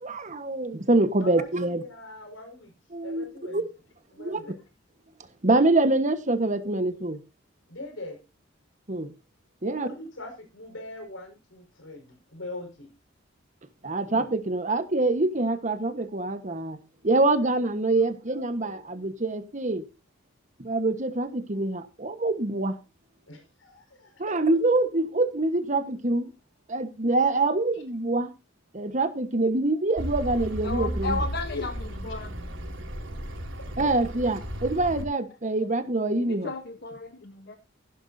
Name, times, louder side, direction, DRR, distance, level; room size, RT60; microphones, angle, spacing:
voice 1, 0.0-1.8 2.9-3.6 4.2-4.4 5.4-7.2 8.9-9.1 9.6-9.9 13.8-16.8 17.0-19.8 20.6-22.8 24.2-26.3 26.7-28.3 28.7-31.2 33.8-36.5, right 2 dB, 40° right, 1.3 m, -25 dB
voice 2, 1.2-2.7 3.0-3.7 4.1-4.6 7.7-8.2 9.6-12.9 23.3-24.4 27.7-27.8 31.5-31.7 33.6-33.9, left 2 dB, 90° left, 5.2 m, -41 dB
Accelerating revving vroom, 30.0-35.0, right 1 dB, 85° right, 5.3 m, -34 dB
voice 3, 30.6-32.4 36.1-37.6, left 3 dB, 55° left, 1.1 m, -34 dB
15.5 x 11.5 x 2.7 m
head